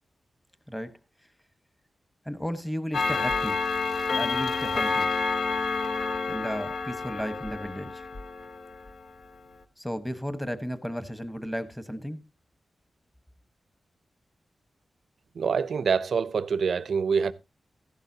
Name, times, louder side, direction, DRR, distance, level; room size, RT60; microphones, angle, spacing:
voice 1, 2.3-3.6 4.1-5.1 6.3-8.0 9.8-12.2, equal, 5° left, 1.1 m, -34 dB
Clock, 2.9-8.9, left 4 dB, 65° left, 0.9 m, -29 dB
voice 2, 15.4-17.3, right 6 dB, 75° right, 0.6 m, -25 dB
15.0 x 12.0 x 2.7 m
wide cardioid pair, 115°, 0 cm